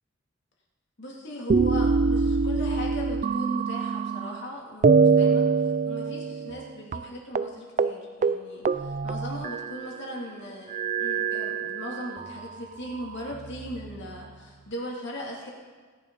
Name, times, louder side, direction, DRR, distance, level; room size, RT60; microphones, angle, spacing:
voice 1, 1.0-15.5, equal, 55° left, -2 dB, 2.6 m, -38 dB
sound 1, 1.5-4.4 4.8-6.7 6.9-7.0 7.3-7.5 7.8-8.0 8.2-9.9 10.7-12.3 13.0-13.9, right 5 dB, 35° right, 0.3 m, -24 dB
18.0 x 10.5 x 4.1 m, 1.5 s
head